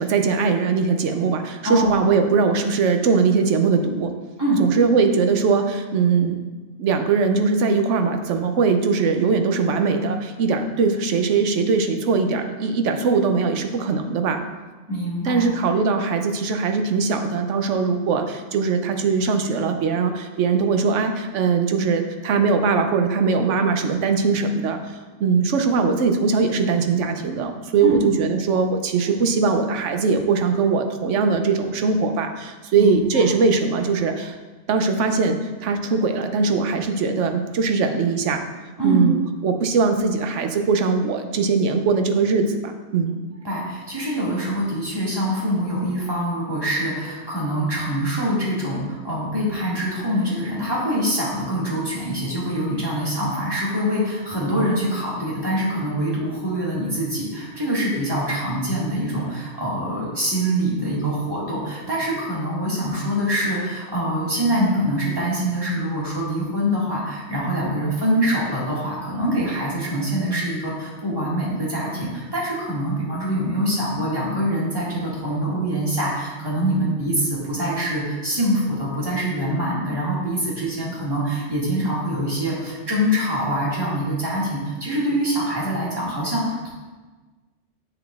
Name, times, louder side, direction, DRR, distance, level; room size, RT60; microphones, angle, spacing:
voice 1, 0.0-4.1 4.6-6.4 6.8-14.4 15.2-34.3 34.7-38.4 38.8-43.1, right 4 dB, 80° right, 6 dB, 1.0 m, -21 dB
voice 2, 1.6-2.0 4.4-4.6 14.9-15.5 27.8-28.0 32.7-33.3 38.8-39.1 43.4-86.7, equal, 20° right, -7 dB, 2.0 m, -24 dB
8.1 x 6.5 x 2.4 m, 1.3 s
omnidirectional pair, 1.2 m